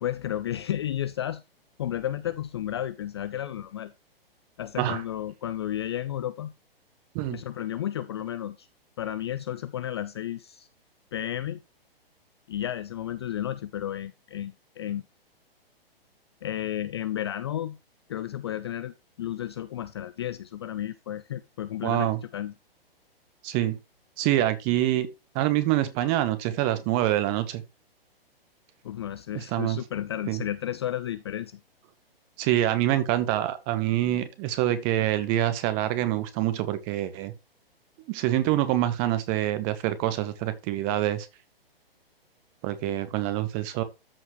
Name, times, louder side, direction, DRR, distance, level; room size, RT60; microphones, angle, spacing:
voice 1, 0.0-1.4 1.8-3.9 4.6-6.5 7.3-8.7 9.0-10.7 11.1-11.6 12.5-15.0 16.4-17.8 18.1-22.5 28.8-31.6, left 11 dB, 25° left, 0.4 m, -32 dB
voice 2, 21.8-22.2 23.4-23.8 24.2-25.1 25.3-27.6 29.3-29.8 30.3-30.4 32.4-37.3 38.1-41.3 42.6-43.8, right 13 dB, 25° right, 1.2 m, -26 dB
13.5 x 4.6 x 3.2 m
figure-of-eight pair, 120°, 30 cm